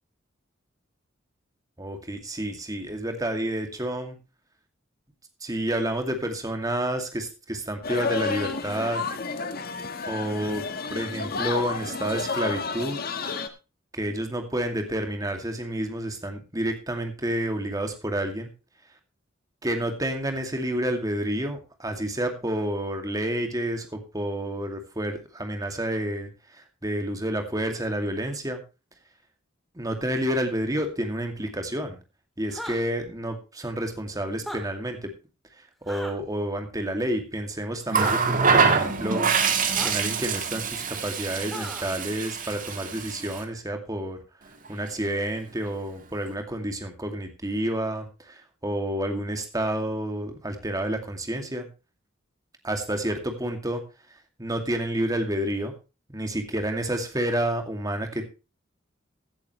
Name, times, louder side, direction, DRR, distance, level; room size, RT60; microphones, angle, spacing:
voice 1, 1.8-4.2 5.4-9.0 10.1-10.6 10.9-13.0 13.9-18.5 19.6-28.6 29.7-32.0 32.4-35.1 35.9-44.2 44.7-51.7 52.6-53.8 54.4-55.7 56.1-58.3, right 1 dB, 20° right, 5 dB, 2.4 m, -29 dB
sound 1, 7.8-13.5, left 4 dB, 50° left, 1.5 m, -31 dB
sound 2, 32.5-32.8 34.3-34.6 35.9-36.1 38.0-38.1 39.7-39.9 41.5-41.9, equal, ahead, 2.8 m, -35 dB
Water tap faucet, 37.9-43.4 44.7-44.9, right 5 dB, 45° right, 1.9 m, -25 dB
16.0 x 11.0 x 3.1 m, 0.30 s
head